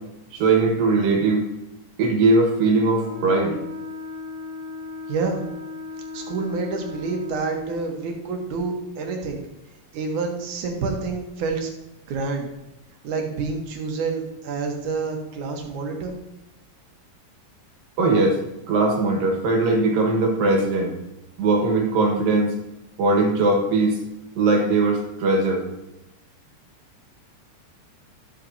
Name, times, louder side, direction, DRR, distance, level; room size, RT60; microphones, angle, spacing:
voice 1, 0.3-1.5 2.0-3.6 18.0-18.4 18.7-20.9 21.4-22.6 23.0-24.0 24.4-25.7, right 3 dB, 85° right, 2 dB, 3.2 m, -20 dB
Wind instrument woodwind instrument, 3.0-7.8, left 3 dB, 25° right, 2.0 m, -36 dB
voice 2, 5.1-5.4 6.1-9.4 9.9-11.7 12.1-12.5 13.0-16.1, right 4 dB, 65° right, 2 dB, 2.6 m, -28 dB
12.5 x 7.3 x 2.8 m, 0.95 s
omnidirectional pair, 4.0 m